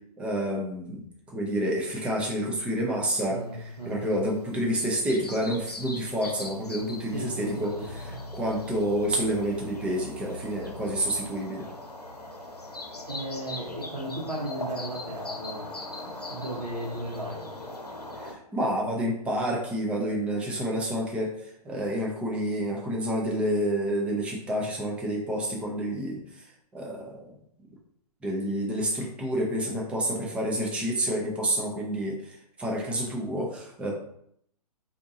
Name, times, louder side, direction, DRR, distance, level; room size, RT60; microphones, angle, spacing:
voice 1, 0.2-3.4 3.8-7.7 8.3-11.7 18.2-21.4 21.6-26.2 26.7-27.3 28.2-33.9, right 1 dB, 5° right, -1 dB, 0.4 m, -29 dB
voice 2, 3.3-4.2 7.1-8.3 13.1-15.7 16.0-17.5, right 1 dB, 80° right, -1 dB, 1.1 m, -36 dB
sound 1, 3.7-18.3, left 1 dB, 85° left, 0.8 m, -40 dB
4.4 x 2.7 x 2.5 m, 0.70 s
figure-of-eight pair, 120°, 20 cm